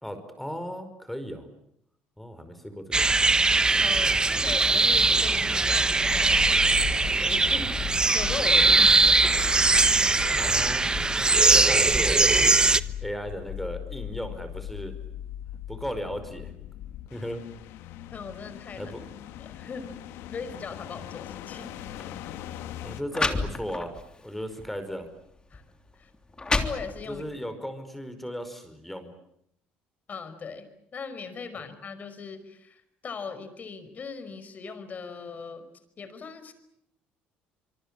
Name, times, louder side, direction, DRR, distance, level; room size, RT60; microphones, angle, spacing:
voice 1, 0.0-1.5 2.2-3.1 10.3-10.9 11.5-12.5 12.8-14.9 15.7-16.5 17.1-17.4 18.8-19.0 22.6-23.9 24.2-25.1 27.1-29.1, equal, 5° left, 9 dB, 5.0 m, -36 dB
sound 1, 2.9-12.8, right 3 dB, 20° right, 1.0 m, -21 dB
voice 2, 3.8-9.2 18.1-18.9 19.4-19.9 20.3-21.8 25.5-25.6 25.9-26.1 26.5-27.2 30.1-35.7 36.0-36.5, left 5 dB, 40° left, 11 dB, 5.3 m, -39 dB
sound 2, 4.9-23.0, left 12 dB, 75° left, 1.7 m, -39 dB
sound 3, 22.0-22.1 22.8-22.9 23.1-24.0 24.6-24.8 25.5-25.6 26.1-27.3, left 3 dB, 20° left, 3.2 m, -29 dB
25.5 x 23.5 x 8.9 m, 0.75 s
supercardioid pair, 85°, 4 cm